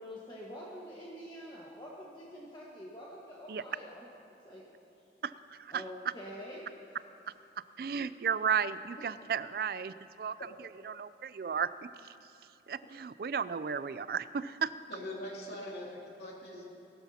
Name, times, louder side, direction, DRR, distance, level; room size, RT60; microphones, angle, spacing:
voice 1, 0.0-4.0 4.4-4.6 5.7-6.7, equal, 25° left, -5 dB, 1.4 m, -46 dB
voice 2, 5.2-5.8 7.8-10.4 10.8-11.7 12.0-12.1 12.7-14.7, right 6 dB, 55° right, 15 dB, 0.3 m, -34 dB
voice 3, 14.9-16.7, left 1 dB, 70° left, -4 dB, 2.7 m, -42 dB
20.0 x 13.0 x 2.9 m, 2.8 s
head